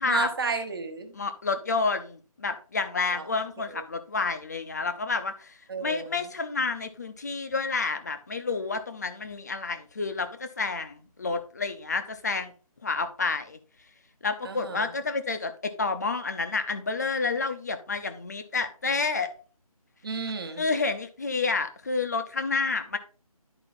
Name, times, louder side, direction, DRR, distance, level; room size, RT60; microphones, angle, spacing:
voice 1, 0.0-1.1 3.1-3.2 3.7-3.8 5.7-6.2 14.4-14.9 20.0-20.6, right 4 dB, 35° right, 6 dB, 1.3 m, -32 dB
voice 2, 1.1-12.5 12.8-13.6 14.2-19.3 20.6-23.0, left 4 dB, 30° left, 8 dB, 0.7 m, -29 dB
11.0 x 4.9 x 4.0 m, 0.37 s
figure-of-eight pair, 165°, 19 cm